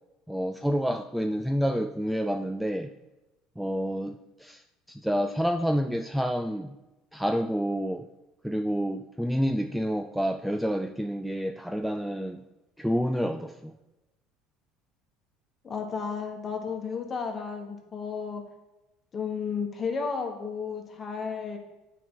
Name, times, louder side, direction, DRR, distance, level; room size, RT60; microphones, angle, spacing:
voice 1, 0.3-2.9 3.6-4.6 4.9-6.7 7.1-8.1 8.4-12.4 12.8-13.7, equal, ahead, 6 dB, 0.3 m, -28 dB
voice 2, 15.6-18.4 19.1-21.6, left 5 dB, 30° left, 3 dB, 1.4 m, -33 dB
8.5 x 4.6 x 3.9 m, 1.0 s
supercardioid pair, 110°, 0 cm